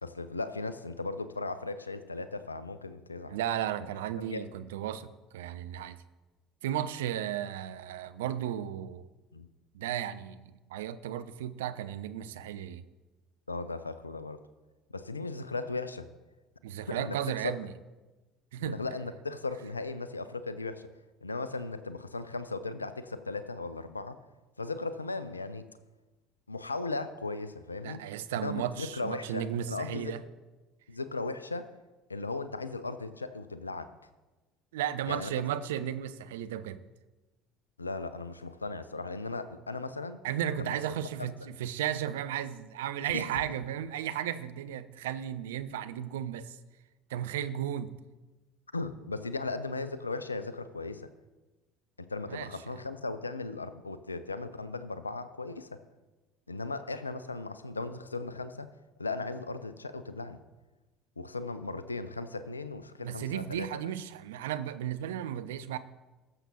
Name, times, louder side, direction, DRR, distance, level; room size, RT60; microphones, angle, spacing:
voice 1, 0.0-3.4 4.2-4.4 9.3-9.5 13.5-14.4 14.9-16.1 16.9-17.2 18.6-20.9 21.2-24.2 24.6-25.7 26.5-28.0 28.4-30.2 30.9-31.7 32.1-33.9 35.1-35.4 37.8-40.2 40.6-40.7 41.2-41.3 43.1-43.4 48.7-51.1 52.0-55.8 56.5-58.7 59.0-60.4 61.2-63.7, left 3 dB, 85° left, 13 dB, 0.4 m, -37 dB
voice 2, 3.3-6.0 6.6-9.0 9.7-12.8 16.6-17.7 18.5-18.8 27.8-30.2 34.7-36.8 40.2-46.6 47.1-47.9 52.3-52.5 63.0-65.8, right 10 dB, 70° right, 12 dB, 0.5 m, -34 dB
19.5 x 6.8 x 2.8 m, 1.2 s
figure-of-eight pair, 60°, 0 cm